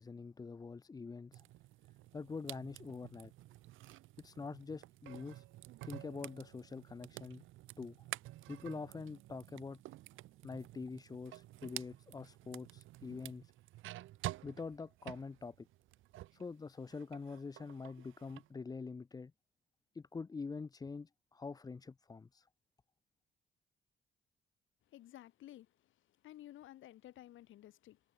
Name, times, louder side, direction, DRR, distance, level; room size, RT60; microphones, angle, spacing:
voice 1, 0.0-1.4 2.1-3.3 4.2-5.4 5.8-7.4 7.8-8.0 8.5-9.8 10.4-13.5 14.4-15.7 16.3-19.3 19.9-22.5, left 4 dB, 20° left, 0.5 m, -45 dB
sound 1, 1.3-16.5 16.8-18.5, right 16 dB, 80° right, 0.8 m, -50 dB
voice 2, 24.9-25.9 26.2-28.0, left 13 dB, 80° left, 1.6 m, -54 dB
cardioid pair, 90°, 20 cm